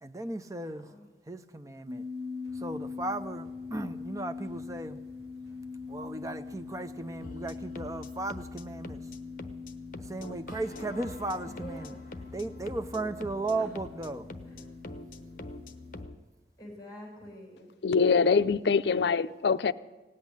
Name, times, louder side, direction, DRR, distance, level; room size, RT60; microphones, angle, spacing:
voice 1, 0.0-0.9 1.3-2.1 2.5-5.0 5.9-9.1 10.0-12.0 12.3-14.3, right 2 dB, 20° right, 0.6 m, -36 dB
voice 2, 0.5-1.1 11.4-12.0 13.6-13.7 14.4-14.6 16.6-17.7, equal, 20° left, 5.1 m, -46 dB
sound 1, 1.9-16.0, left 4 dB, 70° right, 1.5 m, -43 dB
sound 2, 2.4-14.3, left 1 dB, 40° right, 6.3 m, -59 dB
sound 3, 7.2-16.2, left 2 dB, 50° left, 0.9 m, -45 dB
voice 3, 17.8-19.7, left 5 dB, 75° left, 0.5 m, -24 dB
17.0 x 8.3 x 9.8 m
head